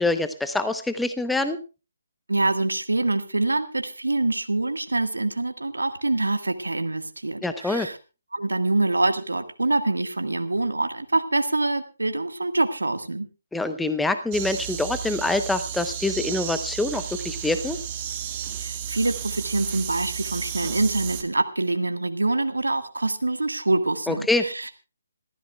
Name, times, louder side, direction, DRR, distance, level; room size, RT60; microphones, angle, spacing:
voice 1, 0.0-1.6 7.4-7.9 13.5-17.8 24.1-24.5, left 2 dB, 5° left, 10 dB, 0.8 m, -25 dB
voice 2, 2.3-8.0 8.3-13.3 18.6-24.7, right 2 dB, 80° right, 9 dB, 1.6 m, -25 dB
sound 1, 14.3-21.2, right 9 dB, 25° right, 1.9 m, -33 dB
27.0 x 14.5 x 2.3 m, 0.31 s
figure-of-eight pair, 145°, 0 cm